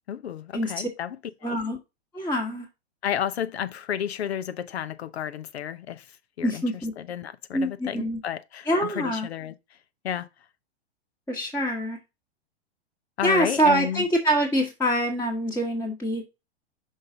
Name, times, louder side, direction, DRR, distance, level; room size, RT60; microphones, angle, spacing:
voice 1, 0.1-1.2 1.4-1.6 3.0-6.6 7.0-9.5 10.0-10.3 13.2-14.1, left 9 dB, 70° left, 0.8 m, -32 dB
voice 2, 1.4-1.8 2.1-2.7 6.4-6.9 7.5-8.2 8.7-9.3 11.3-12.0 13.2-16.2, equal, 5° left, 1.4 m, -25 dB
5.6 x 5.4 x 3.8 m
hypercardioid pair, 110°, 33 cm